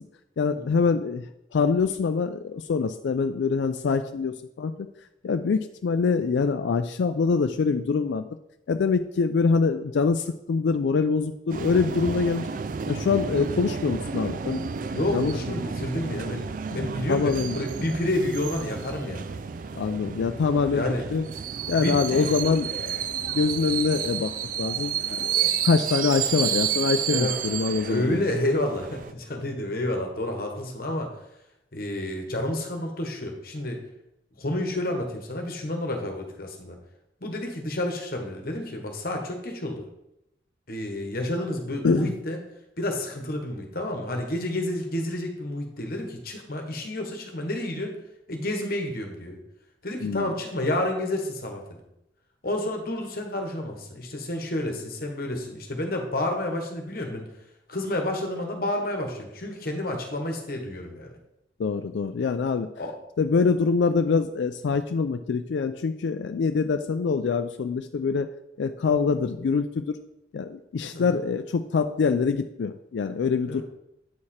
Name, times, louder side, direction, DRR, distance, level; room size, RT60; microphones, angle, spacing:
voice 1, 0.4-1.3 1.5-4.9 5.2-8.3 8.7-12.5 12.9-14.7 15.1-15.3 16.7-16.8 17.1-17.6 19.7-21.3 21.7-24.3 24.6-28.2 41.8-42.1 50.0-50.3 61.6-62.7 63.2-68.3 68.6-70.0 70.3-73.6, left 5 dB, 80° left, 8 dB, 0.4 m, -25 dB
sound 1, 11.5-29.1, right 7 dB, 45° right, 0.3 m, -31 dB
voice 2, 14.9-16.5 16.7-19.4 20.7-21.1 21.8-22.3 27.1-27.4 27.9-31.1 31.7-33.8 34.4-36.8 37.2-39.9 40.7-42.4 42.8-47.9 48.3-49.4 49.8-51.8 52.4-57.3 57.7-61.1 62.8-62.9 70.9-71.2 73.5-73.6, left 1 dB, 55° left, 3 dB, 1.2 m, -30 dB
8.3 x 4.8 x 4.3 m, 0.85 s
head